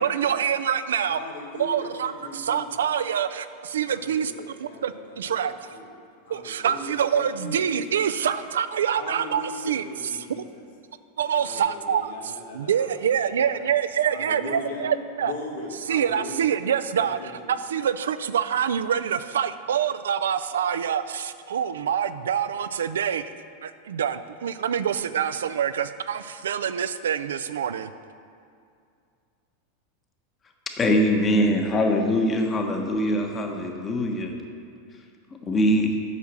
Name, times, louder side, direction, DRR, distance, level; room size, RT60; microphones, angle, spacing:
voice 1, 0.0-1.2 1.6-5.5 6.3-10.1 10.4-10.5 11.2-15.3 15.9-23.2 23.6-27.9, right 8 dB, 85° right, 12 dB, 0.4 m, -26 dB
voice 2, 1.1-2.8 3.8-5.9 6.2-8.0 9.0-10.6 11.4-12.9 13.4-13.6 14.1-14.9 15.2-16.5 16.9-17.5, left 1 dB, 90° left, 0 dB, 1.6 m, -39 dB
voice 3, 30.8-34.4 35.4-36.0, equal, 25° left, 3 dB, 1.3 m, -22 dB
8.2 x 5.8 x 7.5 m, 2.4 s
hypercardioid pair, 110°, 0 cm